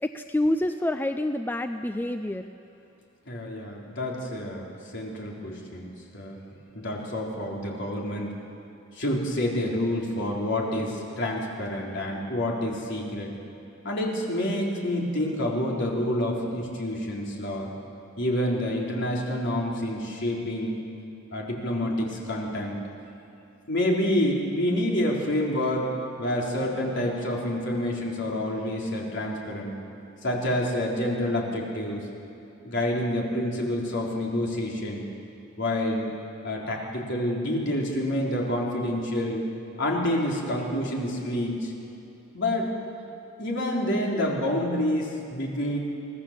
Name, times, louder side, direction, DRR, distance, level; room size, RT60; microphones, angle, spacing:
voice 1, 0.0-2.4, left 1 dB, 10° left, 8 dB, 0.4 m, -27 dB
voice 2, 3.3-6.4 6.7-8.4 9.0-13.3 13.8-17.7 18.2-20.8 21.3-22.8 23.7-25.9 26.2-29.7 30.2-32.1 32.6-35.1 35.6-36.1 36.4-39.4 39.8-41.7 42.3-42.7 43.4-45.8, left 1 dB, 55° left, -2 dB, 3.9 m, -28 dB
24.5 x 17.0 x 7.5 m, 2.9 s
head